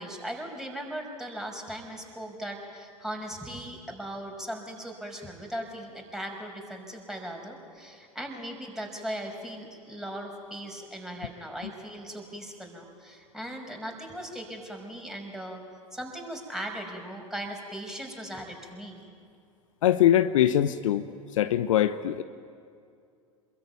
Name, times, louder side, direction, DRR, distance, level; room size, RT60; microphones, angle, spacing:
voice 1, 0.0-15.6 15.9-19.0, right 1 dB, 5° right, 2 dB, 5.7 m, -38 dB
voice 2, 19.8-22.2, left 11 dB, 65° left, 12 dB, 0.9 m, -23 dB
27.0 x 22.5 x 9.4 m, 2.3 s
figure-of-eight pair, 80°, 18 cm